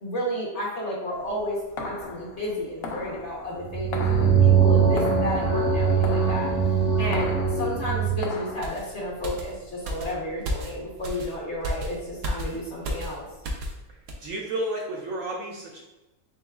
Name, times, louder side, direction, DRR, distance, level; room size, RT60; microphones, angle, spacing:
voice 1, 0.0-6.5 7.0-13.2, equal, 50° left, -3 dB, 1.2 m, -32 dB
sound 1, 1.1-8.6, left 3 dB, 80° left, 0.5 m, -38 dB
sound 2, 3.6-8.3, right 6 dB, 25° right, 0.4 m, -21 dB
sound 3, 8.6-13.8 14.1-14.3, equal, 85° right, 1.3 m, -33 dB
voice 2, 14.2-15.8, right 1 dB, 65° right, -1 dB, 0.9 m, -31 dB
4.5 x 3.8 x 2.3 m, 1.0 s
omnidirectional pair, 1.7 m